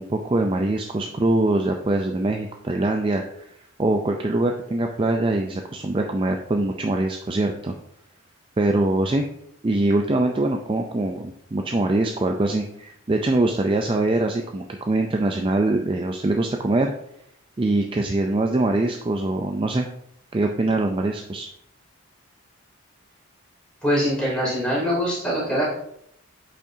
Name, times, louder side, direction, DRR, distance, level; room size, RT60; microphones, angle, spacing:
voice 1, 0.0-3.5 3.8-7.7 8.6-9.2 9.6-16.9 17.6-19.9 20.3-21.5, right 2 dB, 25° right, 3 dB, 0.4 m, -23 dB
voice 2, 23.8-25.7, equal, 5° left, -7 dB, 2.9 m, -23 dB
8.6 x 5.4 x 2.7 m, 0.73 s
head